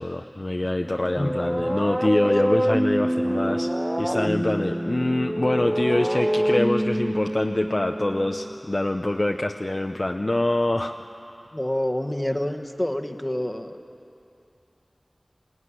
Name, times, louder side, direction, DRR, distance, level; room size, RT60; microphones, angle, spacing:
voice 1, 0.0-3.7 4.0-10.9, left 1 dB, 45° left, 4 dB, 0.7 m, -25 dB
sound 1, 0.8-8.6, equal, 10° right, 0.4 m, -26 dB
voice 2, 1.2-1.7 11.5-13.8, left 1 dB, 20° left, 5 dB, 1.3 m, -28 dB
21.0 x 17.0 x 9.8 m, 2.7 s
wide cardioid pair, 50°, 0 cm